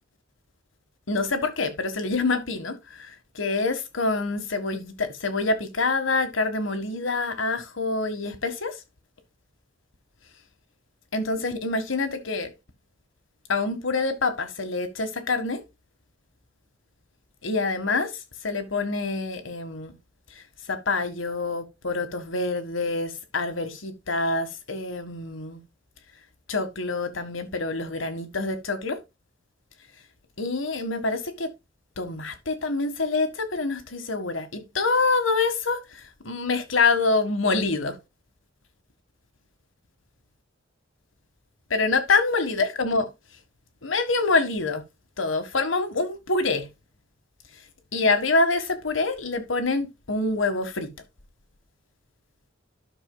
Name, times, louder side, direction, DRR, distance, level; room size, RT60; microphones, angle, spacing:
voice 1, 1.1-8.8 11.1-12.5 13.5-15.6 17.4-18.1 18.4-19.9 20.3-25.6 26.5-29.0 30.4-31.5 32.0-38.0 41.7-43.1 43.8-44.8 45.2-46.7 47.9-50.9, left 3 dB, 80° left, 1.6 m, -26 dB
12.5 x 6.2 x 2.3 m
head